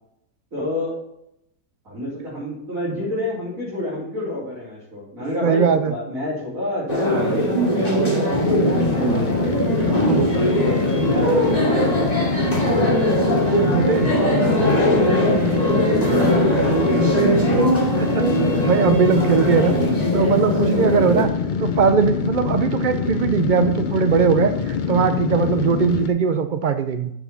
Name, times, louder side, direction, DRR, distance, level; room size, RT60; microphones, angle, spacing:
voice 1, 0.5-0.9 1.8-9.5 10.7-12.3 15.6-17.3 25.6-25.8, left 1 dB, 55° right, -10 dB, 4.8 m, -29 dB
voice 2, 5.4-5.9 9.9-10.3 13.6-14.1 18.0-18.3 18.6-19.7 20.1-21.3 21.6-27.1, right 6 dB, 85° right, 9 dB, 0.4 m, -20 dB
sound 1, 6.9-21.2, equal, 25° left, 2.6 m, -20 dB
sound 2, 8.3-26.1, left 6 dB, 90° left, 0.4 m, -25 dB
sound 3, 9.9-19.9, right 2 dB, 35° right, 3.0 m, -35 dB
7.3 x 7.2 x 5.7 m, 0.78 s
omnidirectional pair, 1.7 m